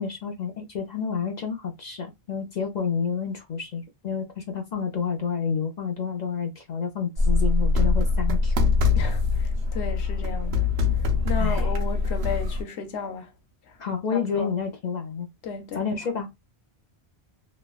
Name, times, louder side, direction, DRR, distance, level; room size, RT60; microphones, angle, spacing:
voice 1, 0.0-8.6 11.4-11.7 13.8-15.3 15.7-16.3, left 6 dB, 50° left, 0.6 m, -29 dB
sound 1, 7.2-12.6, left 4 dB, 70° right, 1.0 m, -23 dB
voice 2, 8.9-10.7 11.2-13.3 14.1-14.5 15.4-15.8, left 5 dB, 85° left, 1.0 m, -34 dB
3.2 x 2.2 x 2.3 m
omnidirectional pair, 1.1 m